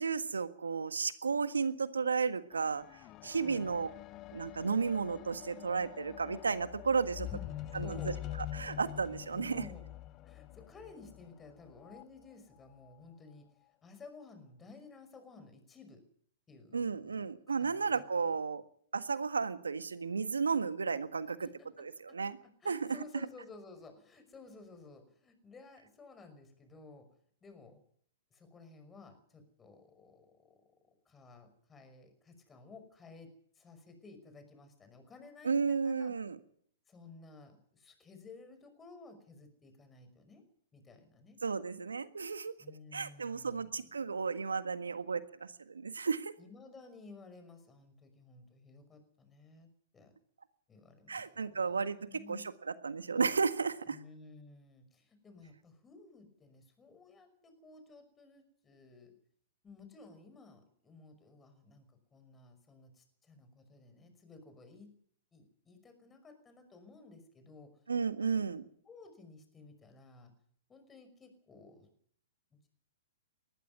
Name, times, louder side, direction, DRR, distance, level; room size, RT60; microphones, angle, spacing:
voice 1, 0.0-2.8 3.2-3.9 4.3-7.3 7.7-8.1 8.5-9.6 16.7-18.6 18.9-21.5 21.8-22.4 22.6-23.0 35.4-36.4 41.4-42.5 42.9-46.3 51.1-52.0 52.3-54.0 67.9-68.6, right 5 dB, 85° right, 12 dB, 1.6 m, -33 dB
sound 1, 2.5-12.0 12.8-12.9, left 13 dB, 35° left, 0.9 m, -45 dB
voice 2, 3.4-3.8 7.2-8.2 9.3-9.9 10.2-13.5 13.8-16.0 16.5-18.0 18.3-18.4 21.4-21.7 22.1-27.1 27.4-27.8 28.3-30.6 31.1-36.1 36.9-40.4 40.7-41.4 42.6-43.8 46.4-50.1 50.7-52.5 53.9-59.1 59.6-64.9 65.3-67.7 68.2-68.5 68.9-70.3 70.7-71.9, left 3 dB, 15° left, 8 dB, 5.7 m, -55 dB
20.0 x 14.5 x 9.6 m, 0.63 s
hypercardioid pair, 120°, 0 cm